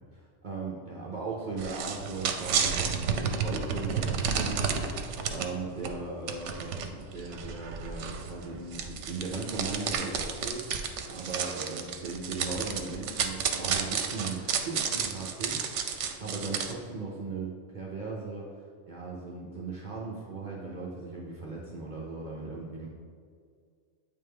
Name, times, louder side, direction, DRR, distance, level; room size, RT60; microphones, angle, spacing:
voice 1, 0.1-18.5 18.9-22.9, right 3 dB, 50° right, -4 dB, 0.7 m, -38 dB
sound 1, 1.6-5.5 5.8-5.9 6.3-16.7, right 6 dB, 80° right, 0.9 m, -32 dB
8.5 x 3.5 x 3.3 m, 2.2 s
omnidirectional pair, 1.2 m